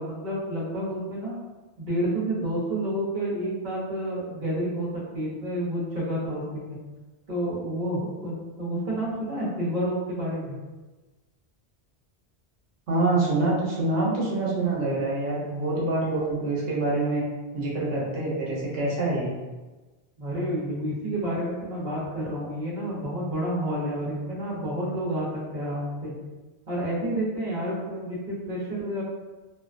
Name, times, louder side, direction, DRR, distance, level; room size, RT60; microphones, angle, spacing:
voice 1, 0.0-1.4 1.8-4.9 5.1-6.8 7.3-10.6 20.2-26.1 26.7-29.0, right 1 dB, 45° right, -6 dB, 0.9 m, -29 dB
voice 2, 12.9-17.2 17.5-19.4, right 2 dB, 90° right, -5 dB, 1.1 m, -26 dB
2.6 x 2.2 x 2.4 m, 1.2 s
omnidirectional pair, 1.1 m